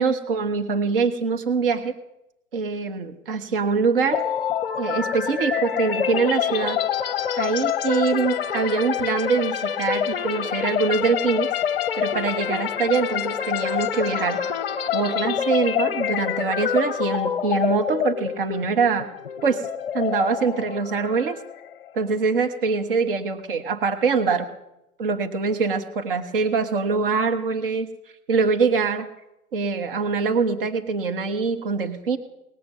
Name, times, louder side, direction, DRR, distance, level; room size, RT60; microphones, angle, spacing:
voice 1, 0.0-1.9 2.5-4.2 4.8-6.8 7.4-11.5 11.9-14.4 14.9-19.1 19.4-19.6 19.9-21.4 21.9-24.5 25.0-27.9 28.3-29.1 29.5-32.2, right 5 dB, 40° right, 6 dB, 1.3 m, -23 dB
sound 1, 4.1-21.9, left 9 dB, 40° left, 0.8 m, -26 dB
19.5 x 6.8 x 9.1 m, 0.89 s
hypercardioid pair, 160°, 44 cm